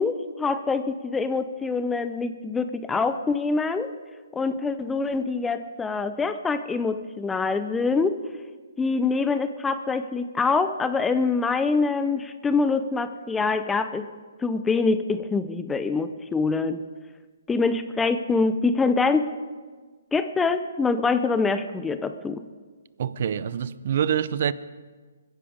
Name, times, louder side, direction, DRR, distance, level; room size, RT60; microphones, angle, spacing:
voice 1, 0.0-3.9 4.3-8.2 8.8-14.1 14.4-16.8 17.5-19.3 20.1-22.4, left 4 dB, 10° left, 0.6 m, -25 dB
voice 2, 23.0-24.5, right 9 dB, 55° right, 0.6 m, -25 dB
22.0 x 10.5 x 5.1 m
hypercardioid pair, 140°, 0 cm